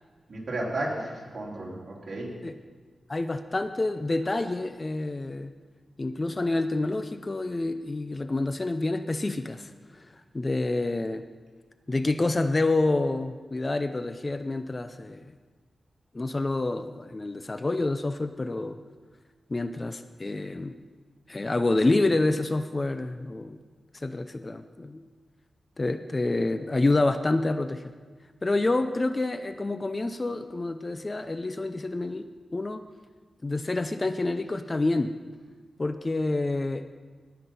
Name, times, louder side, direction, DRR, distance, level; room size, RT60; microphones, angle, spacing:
voice 1, 0.3-2.3, right 1 dB, 55° right, -3 dB, 3.1 m, -33 dB
voice 2, 3.1-5.5 6.0-9.7 10.3-11.3 11.9-15.3 16.1-18.8 19.5-20.8 21.3-23.6 23.9-25.0 25.8-27.9 28.4-32.3 32.5-32.8 33.4-35.1 35.8-36.8, left 2 dB, 30° left, 10 dB, 0.5 m, -28 dB
17.5 x 5.9 x 5.5 m, 1.5 s
wide cardioid pair, 95°, 0 cm